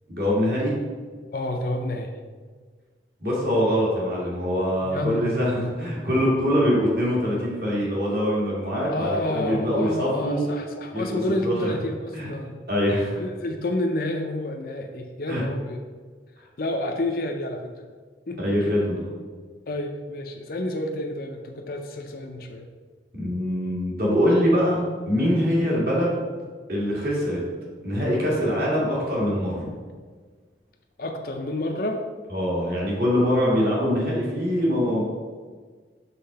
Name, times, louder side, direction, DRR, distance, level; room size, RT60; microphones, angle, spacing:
voice 1, 0.1-0.8 3.2-10.5 10.9-11.7 12.1-12.3 12.7-13.2 15.3-15.4 18.4-19.0 23.2-26.2 26.7-27.4 27.8-29.7 32.3-35.1, equal, 55° right, -5 dB, 2.0 m, -23 dB
voice 2, 1.3-2.1 4.8-5.4 8.9-12.5 13.2-15.8 16.6-17.7 18.3-18.4 19.7-22.7 25.6-25.7 31.0-32.0, left 1 dB, 55° left, 3 dB, 0.5 m, -29 dB
5.7 x 3.7 x 5.4 m, 1.5 s
head